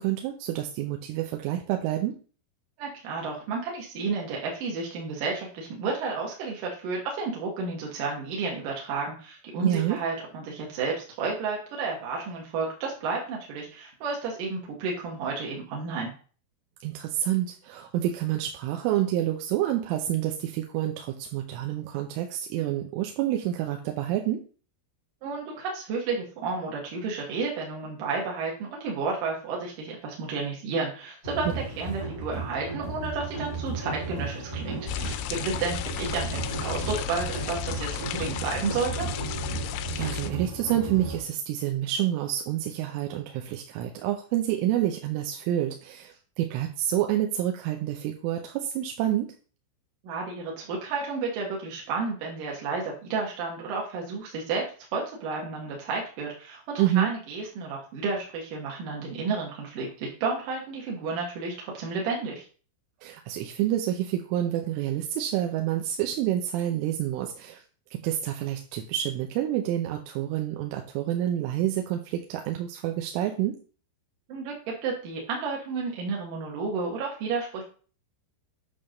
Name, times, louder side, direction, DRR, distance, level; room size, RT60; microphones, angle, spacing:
voice 1, 0.0-2.2 9.6-10.0 16.8-24.4 39.9-49.3 56.8-57.1 63.0-67.6 67.9-73.6, right 12 dB, 80° right, 4 dB, 3.2 m, -28 dB
voice 2, 2.8-16.1 25.2-39.1 50.0-54.6 54.9-62.5 74.3-77.6, right 4 dB, 65° right, -2 dB, 2.3 m, -31 dB
sound 1, 31.2-41.2, right 3 dB, 20° right, 0.7 m, -35 dB
sound 2, 34.9-40.3, left 11 dB, 85° left, 3.0 m, -34 dB
8.8 x 3.6 x 6.4 m, 0.40 s
omnidirectional pair, 5.8 m